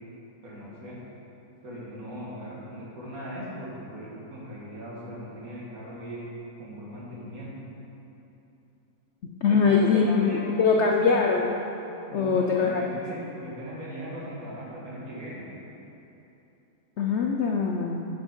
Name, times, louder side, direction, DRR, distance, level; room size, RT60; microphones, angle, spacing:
voice 1, 0.4-1.0 1.6-7.6 9.2-11.1 12.1-15.5, equal, 55° right, -6 dB, 2.6 m, -38 dB
voice 2, 9.4-11.5 12.1-12.8 17.0-18.1, left 5 dB, 65° left, 0 dB, 0.7 m, -22 dB
9.9 x 8.7 x 4.6 m, 3.0 s
omnidirectional pair, 1.8 m